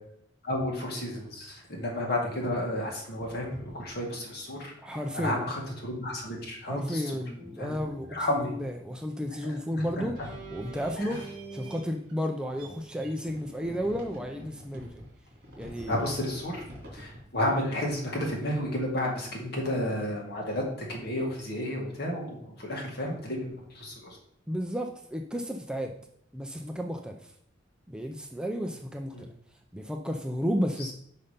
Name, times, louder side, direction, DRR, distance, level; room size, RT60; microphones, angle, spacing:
voice 1, 0.4-7.2 7.6-7.7 8.1-8.5 9.4-10.1 11.1-11.2 15.9-16.6 16.9-24.2 29.1-29.2 30.8-30.9, left 1 dB, 55° left, -1 dB, 2.0 m, -32 dB
sound 1, 2.8-2.9 3.2-3.9 6.3-6.4 7.0-7.1 7.4-8.7 9.1-9.2 10.2-12.1 12.5-17.2 18.6-18.7 19.6-19.7, right 1 dB, 50° right, 3.1 m, -45 dB
voice 2, 4.8-5.5 6.7-10.2 10.5-11.2 11.5-15.0 15.6-16.0 24.5-25.9 26.3-27.3 27.9-29.3 29.7-30.9, equal, 5° right, 3 dB, 0.4 m, -33 dB
5.5 x 5.5 x 5.1 m, 0.70 s
head